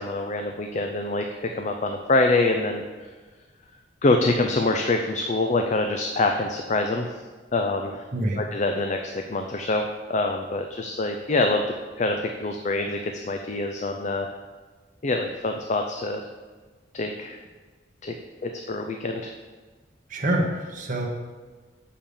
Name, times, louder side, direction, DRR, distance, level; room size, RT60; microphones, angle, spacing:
voice 1, 0.0-3.1 4.0-7.1 7.5-8.0 8.4-14.3 15.0-16.3 16.9-17.4 18.0-18.1 18.4-19.3, left 2 dB, 40° left, 4 dB, 0.5 m, -25 dB
voice 2, 8.1-8.4 20.1-21.1, right 1 dB, 45° right, 0 dB, 1.2 m, -26 dB
6.6 x 5.6 x 7.1 m, 1.4 s
head